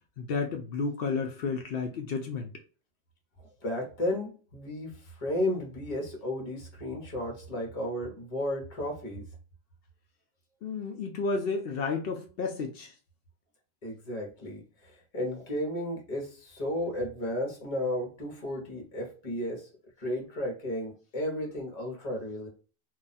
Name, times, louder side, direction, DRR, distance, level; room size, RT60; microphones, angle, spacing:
voice 1, 0.2-2.5 10.6-12.9, left 4 dB, 65° left, 3 dB, 0.7 m, -32 dB
voice 2, 3.6-9.2 13.8-19.7 20.0-22.5, left 1 dB, 40° left, 0 dB, 1.0 m, -33 dB
2.4 x 2.2 x 4.0 m, 0.36 s
omnidirectional pair, 1.1 m